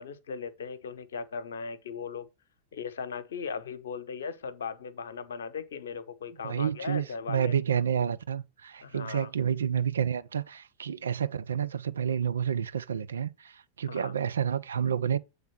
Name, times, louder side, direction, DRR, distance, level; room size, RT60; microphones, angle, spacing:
voice 1, 0.0-2.3 2.7-7.5 8.8-9.3 13.9-14.2, left 6 dB, 65° left, 0.8 m, -38 dB
voice 2, 6.4-15.2, right 8 dB, 70° right, 0.5 m, -29 dB
8.0 x 3.4 x 5.8 m
figure-of-eight pair, 90°, 0 cm